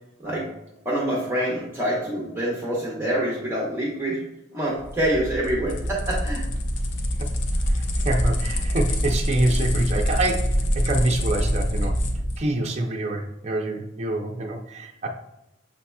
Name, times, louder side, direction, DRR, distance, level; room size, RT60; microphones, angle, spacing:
voice 1, 0.8-4.2 4.5-6.5, right 1 dB, 15° right, -6 dB, 0.9 m, -26 dB
sound 1, 4.8-12.4, equal, 65° left, 0.6 m, -25 dB
voice 2, 7.7-12.0 12.4-15.1, right 2 dB, 35° right, 0 dB, 0.5 m, -26 dB
7.0 x 2.8 x 2.2 m, 0.92 s
head